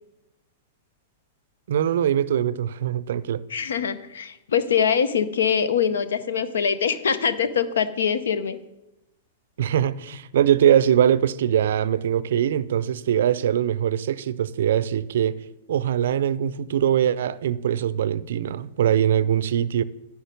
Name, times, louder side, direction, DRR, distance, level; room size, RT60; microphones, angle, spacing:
voice 1, 1.7-3.4 9.6-15.4 15.7-19.8, right 10 dB, 65° right, 0.4 m, -22 dB
voice 2, 3.5-8.6, left 7 dB, 75° left, 0.6 m, -23 dB
10.5 x 4.9 x 5.2 m
hypercardioid pair, 105°, 0 cm